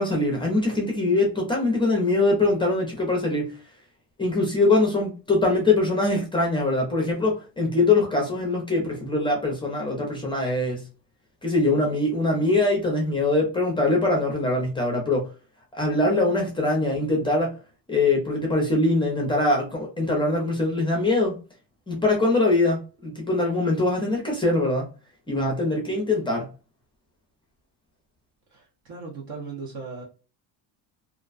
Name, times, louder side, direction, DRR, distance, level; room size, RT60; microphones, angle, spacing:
voice 1, 0.0-3.5 4.2-10.8 11.4-15.3 15.7-17.5 17.9-21.4 21.9-24.9 25.3-26.5, left 2 dB, 10° left, 0.5 m, -23 dB
voice 2, 28.5-30.0, right 4 dB, 55° right, 0.9 m, -38 dB
2.5 x 2.2 x 2.4 m
cardioid pair, 140°, 43 cm